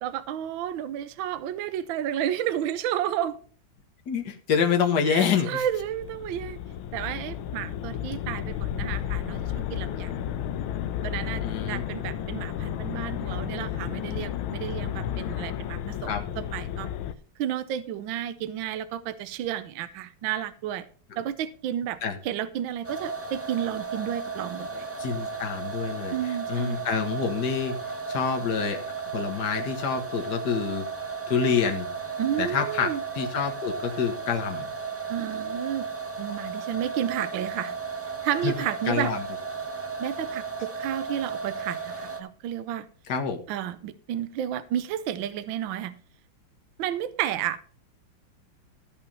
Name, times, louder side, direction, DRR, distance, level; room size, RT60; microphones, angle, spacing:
voice 1, 0.0-3.4 5.1-6.6 6.9-10.1 11.0-16.9 17.4-20.8 21.2-22.0 22.2-24.9 26.1-26.8 32.2-33.0 35.1-35.9 36.2-37.8 38.2-39.1 40.0-42.9 43.5-46.0 46.8-47.7, right 10 dB, 70° right, 13 dB, 1.4 m, -31 dB
voice 2, 4.1-5.6 11.4-11.8 15.0-15.4 16.0-16.2 21.1-21.2 22.0-22.2 25.0-27.7 28.1-28.8 29.1-30.8 31.3-31.9 32.4-32.9 33.2-34.7 38.4-38.5 38.9-39.2 43.1-43.4, left 6 dB, 50° left, 4 dB, 2.0 m, -27 dB
sound 1, 5.6-17.1, left 10 dB, 75° left, 1.5 m, -32 dB
sound 2, 22.8-42.2, right 4 dB, 15° right, 0.4 m, -35 dB
14.5 x 5.6 x 5.4 m, 0.43 s
omnidirectional pair, 2.3 m